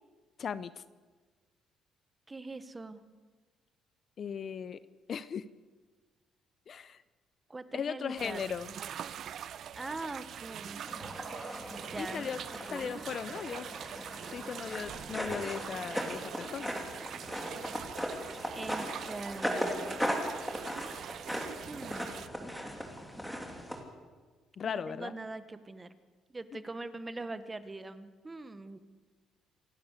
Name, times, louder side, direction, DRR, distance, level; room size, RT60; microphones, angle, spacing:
voice 1, 0.4-0.8 4.2-4.8 5.1-5.4 6.7-7.0 7.7-8.7 12.0-12.4 12.7-13.7 14.2-16.7 24.6-25.1 26.5-26.6, left 7 dB, 45° left, 15 dB, 0.6 m, -37 dB
voice 2, 2.3-3.0 7.5-8.4 9.7-10.8 11.8-12.3 12.7-12.9 18.5-20.0 21.7-22.2 24.6-25.9 26.3-28.8, right 2 dB, 20° right, 11 dB, 1.3 m, -42 dB
sound 1, 8.2-22.3, right 9 dB, 60° right, 0.7 m, -44 dB
sound 2, 10.9-23.8, equal, ahead, 3.2 m, -38 dB
27.5 x 12.0 x 8.2 m, 1.4 s
cardioid pair, 115°, 0 cm